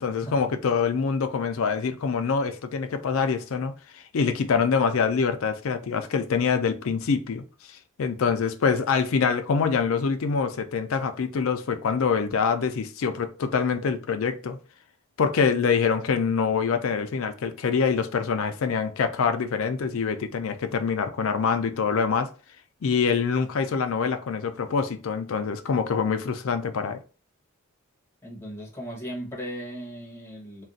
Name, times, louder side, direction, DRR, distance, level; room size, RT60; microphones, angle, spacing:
voice 1, 0.0-7.4 7.7-14.6 15.2-22.3 22.8-27.0, left 5 dB, 75° left, 0.4 m, -25 dB
voice 2, 28.2-30.6, equal, 10° left, 0.8 m, -37 dB
2.4 x 2.2 x 3.9 m
head